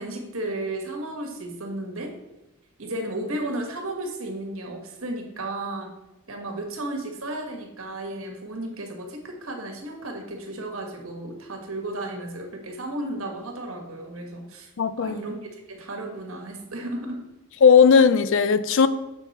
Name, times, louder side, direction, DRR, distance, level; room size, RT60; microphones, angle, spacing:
voice 1, 0.0-2.1 2.8-5.9 6.3-14.7 15.0-17.2, right 1 dB, 65° right, 2 dB, 1.5 m, -33 dB
voice 2, 14.8-15.2 17.6-18.9, left 6 dB, 60° left, 14 dB, 0.4 m, -16 dB
7.3 x 5.4 x 4.2 m, 1.0 s
head